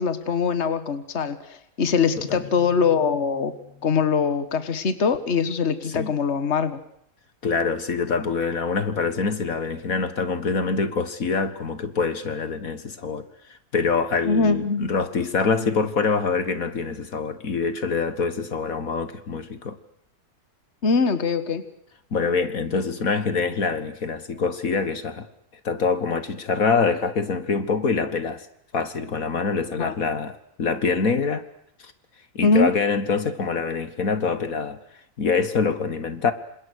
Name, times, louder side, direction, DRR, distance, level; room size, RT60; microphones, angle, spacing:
voice 1, 0.0-3.5 3.8-6.8 14.3-14.9 20.8-21.6 29.8-29.9 32.4-32.7, left 5 dB, 50° left, 1.9 m, -22 dB
sound 1, 2.1-5.8, left 8 dB, 10° left, 4.8 m, -48 dB
voice 2, 7.4-19.8 22.1-25.3 25.6-28.4 28.7-31.5 31.8-31.9 32.4-34.8 35.2-36.3, left 5 dB, 65° left, 2.1 m, -25 dB
28.5 x 26.5 x 6.5 m
omnidirectional pair, 1.6 m